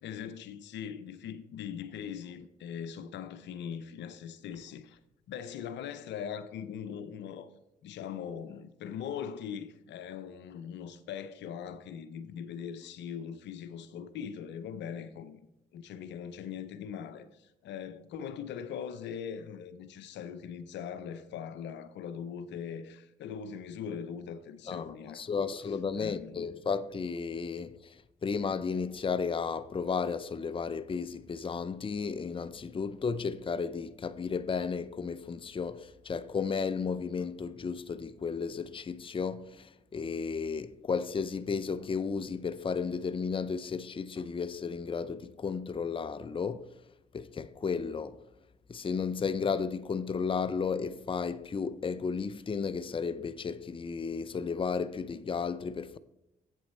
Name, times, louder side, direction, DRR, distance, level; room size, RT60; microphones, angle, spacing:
voice 1, 0.0-5.0 5.3-7.5 7.8-15.4 15.7-25.6 26.0-26.4, left 8 dB, 75° left, 0.6 m, -41 dB
voice 2, 24.7-46.7 47.1-48.2 48.7-56.0, left 5 dB, 30° left, 0.5 m, -33 dB
8.2 x 7.4 x 4.3 m
supercardioid pair, 50°, 19 cm